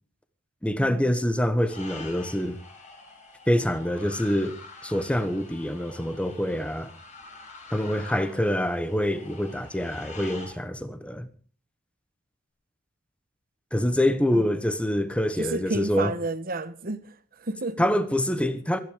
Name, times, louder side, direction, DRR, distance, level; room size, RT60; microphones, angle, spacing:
voice 1, 0.6-2.6 3.5-4.6 4.8-6.9 7.7-11.3 13.7-16.1 17.8-18.8, left 1 dB, 5° left, 1.2 m, -25 dB
sound 1, 1.6-10.5, left 3 dB, 40° left, 5.7 m, -46 dB
voice 2, 15.4-17.0 17.4-17.8, right 2 dB, 50° right, 1.2 m, -31 dB
24.0 x 10.5 x 5.1 m
head